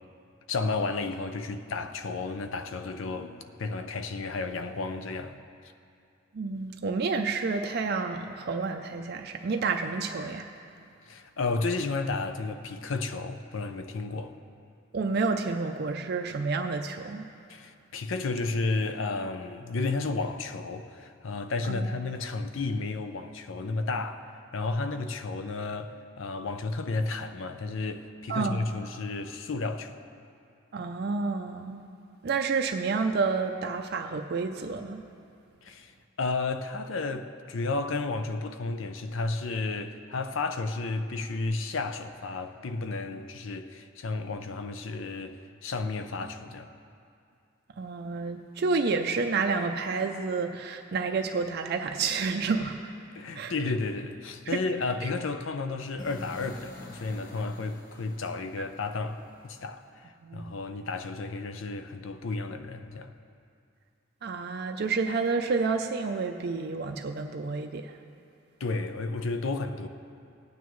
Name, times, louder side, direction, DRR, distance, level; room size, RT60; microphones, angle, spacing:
voice 1, 0.5-5.4 11.1-14.4 17.5-30.0 35.6-35.9 36.2-46.7 53.1-63.1 68.6-69.9, left 3 dB, 65° left, 0.6 m, -32 dB
voice 2, 6.3-10.5 14.9-17.3 21.7-22.0 28.3-28.7 30.7-31.9 32.2-35.0 47.8-52.9 53.3-53.5 55.0-55.1 60.2-60.6 64.2-68.0, right 4 dB, 50° right, 0.4 m, -29 dB
sound 1, 56.0-59.9, left 1 dB, 40° left, 1.0 m, -48 dB
18.0 x 9.2 x 3.1 m
head